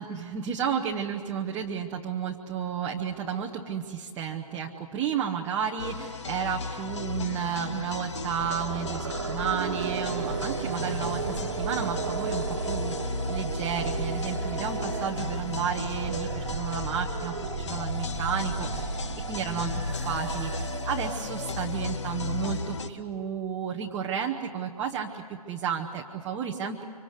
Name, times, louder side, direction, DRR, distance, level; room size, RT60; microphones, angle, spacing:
voice 1, 0.0-26.8, right 7 dB, 10° right, -1 dB, 0.7 m, -32 dB
sound 1, 5.8-22.9, left 4 dB, 50° left, 1.2 m, -35 dB
sound 2, 8.2-22.4, right 6 dB, 40° right, 1.3 m, -35 dB
25.5 x 25.5 x 8.1 m, 2.4 s
figure-of-eight pair, 145°, 19 cm